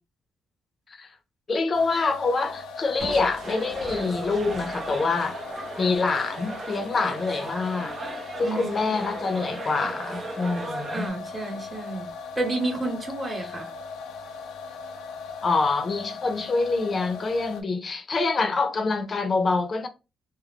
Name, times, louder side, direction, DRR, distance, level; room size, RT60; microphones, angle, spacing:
voice 1, 1.5-5.4 5.8-8.0 8.4-11.1 15.4-19.9, left 3 dB, 40° left, 0.6 m, -26 dB
sound 1, 1.7-17.6, left 5 dB, 85° left, 0.5 m, -39 dB
Crushing, 3.0-6.8, right 2 dB, 70° right, 0.8 m, -43 dB
sound 2, 3.4-11.1, right 3 dB, 35° right, 0.4 m, -37 dB
voice 2, 8.4-8.8 10.9-13.7, right 2 dB, 20° right, 0.9 m, -30 dB
2.4 x 2.1 x 3.4 m
cardioid pair, 90°, 0 cm